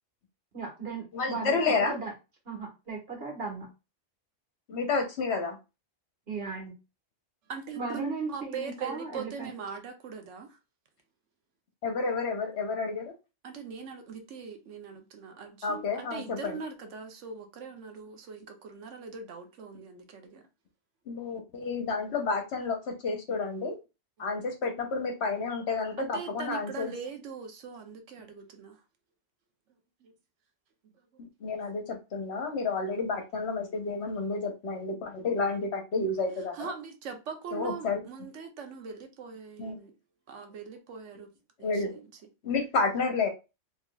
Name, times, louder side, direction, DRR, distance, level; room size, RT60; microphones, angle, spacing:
voice 1, 0.5-1.6 1.9-2.1 2.4-3.7 6.3-6.8 7.7-9.5, right 4 dB, 55° right, 1.6 m, -36 dB
voice 2, 1.1-2.0 4.7-5.6 11.8-13.1 15.6-16.6 21.1-22.8 23.0-23.8 24.2-26.9 31.2-36.7 37.5-38.0 39.6-39.7 41.6-42.0 42.4-43.3, left 4 dB, 65° left, 1.1 m, -30 dB
voice 3, 7.5-10.6 13.4-20.4 26.0-28.8 30.0-30.1 36.5-39.9 40.3-41.3 41.6-42.1, right 5 dB, 75° right, 1.0 m, -41 dB
3.5 x 3.2 x 2.3 m
omnidirectional pair, 1.3 m